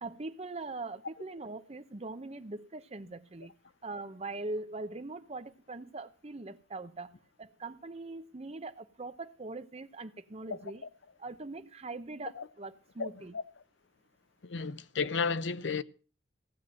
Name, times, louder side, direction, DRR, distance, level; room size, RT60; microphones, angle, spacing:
voice 1, 0.0-3.5 3.8-10.8 11.2-13.3, right 2 dB, 35° right, 0.7 m, -42 dB
voice 2, 14.4-15.8, left 5 dB, 70° left, 0.6 m, -32 dB
15.5 x 7.3 x 6.3 m
head